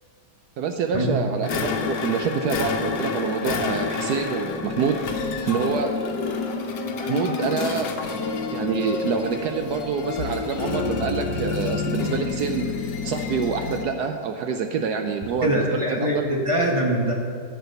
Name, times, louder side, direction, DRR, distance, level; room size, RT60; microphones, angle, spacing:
voice 1, 0.6-5.9 6.9-7.9 8.5-12.7 13.0-16.3, right 6 dB, 70° right, 6 dB, 1.0 m, -26 dB
sound 1, 1.4-14.0, left 5 dB, 70° left, 1.5 m, -28 dB
voice 2, 15.4-17.1, equal, 20° right, -1 dB, 0.9 m, -23 dB
11.0 x 4.9 x 7.8 m, 2.2 s
omnidirectional pair, 2.0 m